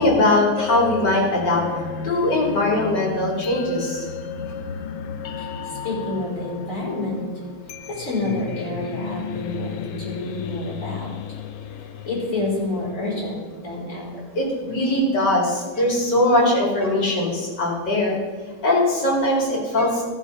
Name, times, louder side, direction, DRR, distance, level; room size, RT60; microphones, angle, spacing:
voice 1, 0.0-1.6 2.0-4.0 14.3-18.2 18.6-20.0, left 1 dB, 60° left, -2 dB, 3.2 m, -20 dB
sound 1, 0.6-13.5, left 7 dB, 80° left, 0.7 m, -34 dB
voice 2, 5.4-7.2 7.9-11.2 12.1-14.2, left 2 dB, 40° left, -6 dB, 4.5 m, -28 dB
14.0 x 6.3 x 5.3 m, 1.4 s
omnidirectional pair, 2.1 m